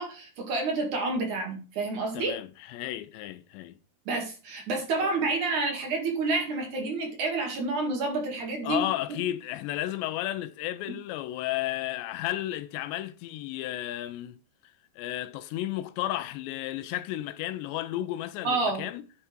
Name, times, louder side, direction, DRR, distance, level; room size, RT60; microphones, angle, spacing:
voice 1, 0.0-2.3 4.1-8.8 9.1-9.2 18.4-18.8, right 3 dB, 50° right, 3.3 m, -29 dB
voice 2, 2.1-3.8 5.0-5.1 8.6-14.4 15.0-19.1, left 14 dB, 80° left, 2.8 m, -33 dB
10.0 x 7.4 x 4.6 m
omnidirectional pair, 5.1 m